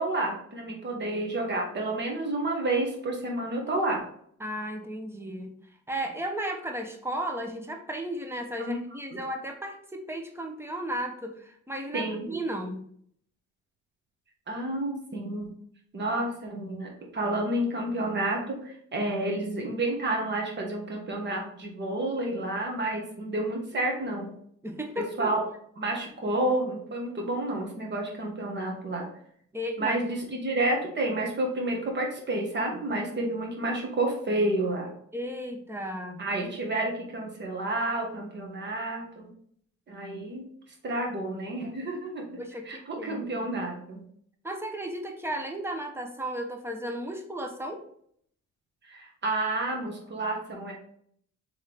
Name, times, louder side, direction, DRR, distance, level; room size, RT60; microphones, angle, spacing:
voice 1, 0.0-4.0 8.6-8.8 11.9-12.4 14.5-15.5 15.9-24.3 25.0-25.4 25.8-29.1 29.8-34.9 36.2-39.3 39.9-40.4 40.8-42.3 42.6-44.0 48.9-50.7, right 2 dB, 35° right, 0 dB, 1.3 m, -30 dB
voice 2, 4.4-5.5 5.9-12.8 24.6-25.3 29.5-30.0 35.1-36.2 42.4-43.5 44.4-47.8, right 1 dB, 10° right, 3 dB, 0.7 m, -34 dB
3.6 x 3.2 x 3.4 m, 0.65 s
cardioid pair, 90°, 30 cm